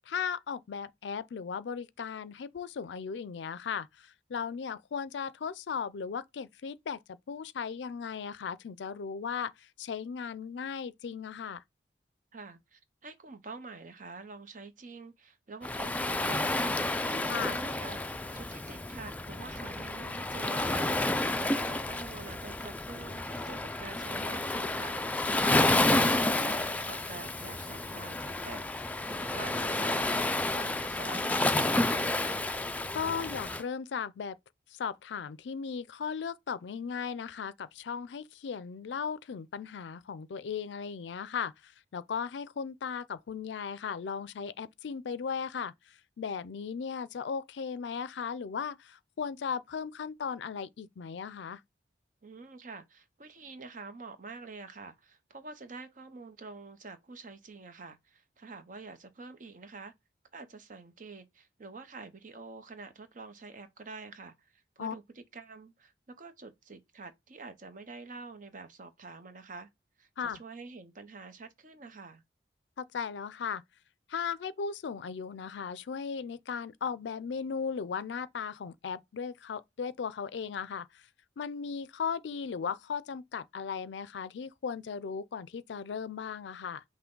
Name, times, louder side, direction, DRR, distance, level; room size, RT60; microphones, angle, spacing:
voice 1, 0.1-11.6 17.3-17.5 25.4-25.7 32.9-34.4 34.7-51.6 64.8-64.9 70.2-70.4 72.8-73.6 74.1-81.1 81.4-86.8, left 6 dB, 85° left, 0.4 m, -37 dB
voice 2, 12.3-16.8 17.2-18.0 18.3-32.5 52.2-59.9 60.3-69.7 70.0-72.2, right 3 dB, 50° right, 0.8 m, -47 dB
Waves surf, 15.6-33.6, left 2 dB, 10° left, 0.3 m, -30 dB
5.7 x 2.2 x 3.8 m
head